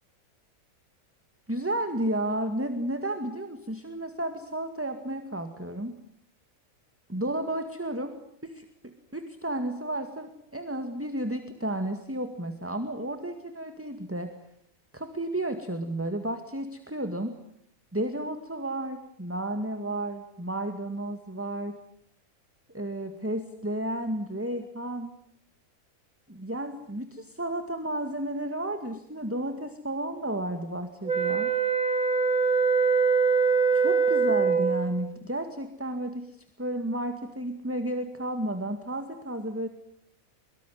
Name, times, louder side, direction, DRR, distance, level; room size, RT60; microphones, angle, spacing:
voice 1, 1.5-6.0 7.1-8.1 8.4-14.3 14.9-17.3 17.9-21.8 22.7-25.2 26.3-31.5 33.7-39.7, right 1 dB, 10° right, 7 dB, 2.1 m, -32 dB
sound 1, 31.0-35.0, right 5 dB, 30° right, 3.7 m, -23 dB
24.0 x 23.5 x 9.4 m, 0.69 s
omnidirectional pair, 1.5 m